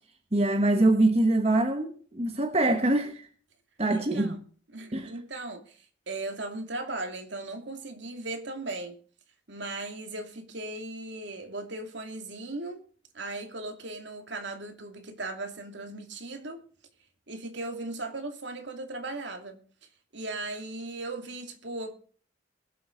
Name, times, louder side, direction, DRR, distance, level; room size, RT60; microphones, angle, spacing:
voice 1, 0.3-3.3 3.8-4.4 4.9-5.1, right 2 dB, 30° right, 1.3 m, -24 dB
voice 2, 3.9-4.4 4.7-9.0 9.5-12.8 13.1-16.6 17.3-19.6 20.1-22.0, right 2 dB, 65° right, 2.7 m, -37 dB
23.0 x 7.9 x 4.0 m
head